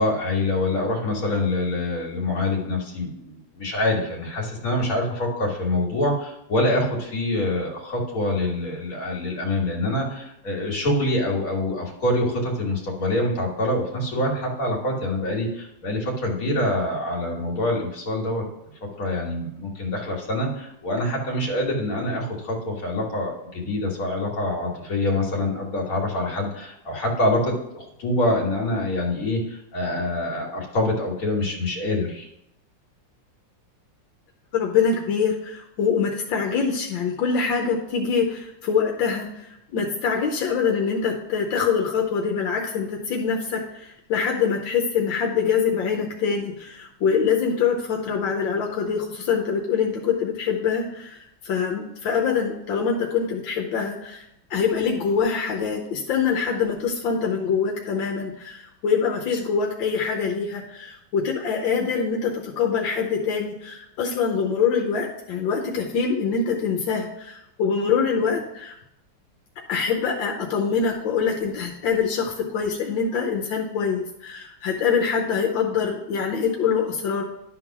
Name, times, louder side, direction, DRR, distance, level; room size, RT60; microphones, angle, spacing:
voice 1, 0.0-18.4 19.0-32.3, left 1 dB, 45° left, -2 dB, 2.2 m, -25 dB
voice 2, 34.5-68.8 69.7-77.2, left 6 dB, 80° left, 1 dB, 1.6 m, -24 dB
11.5 x 3.8 x 5.9 m, 0.81 s
omnidirectional pair, 2.1 m